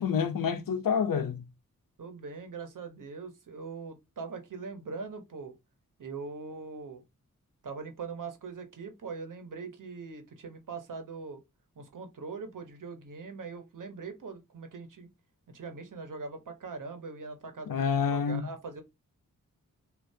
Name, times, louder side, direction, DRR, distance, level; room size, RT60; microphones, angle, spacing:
voice 1, 0.0-1.4 17.7-18.5, left 6 dB, 85° left, 0.9 m, -28 dB
voice 2, 2.0-5.6 6.0-7.0 7.6-11.4 11.8-15.1 15.5-18.8, right 4 dB, 70° right, 1.2 m, -41 dB
6.5 x 2.8 x 2.8 m
wide cardioid pair, 145°, 33 cm